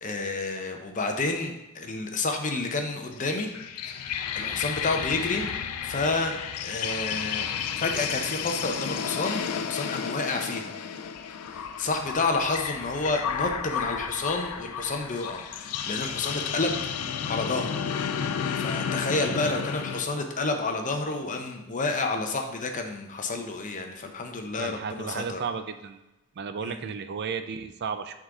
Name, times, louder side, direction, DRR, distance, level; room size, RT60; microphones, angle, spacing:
voice 1, 0.0-3.5 3.9-4.0 4.3-5.5 5.8-7.5 7.8-10.7 11.5-16.9 17.3-17.8 18.6-25.4 26.6-26.8, left 3 dB, 35° left, 4 dB, 0.7 m, -30 dB
sound 1, 3.1-20.0, left 7 dB, 85° left, 0.4 m, -32 dB
voice 2, 19.3-19.7 24.6-26.0 26.4-28.2, right 6 dB, 50° right, 9 dB, 0.4 m, -34 dB
6.3 x 3.7 x 4.7 m, 1.0 s
head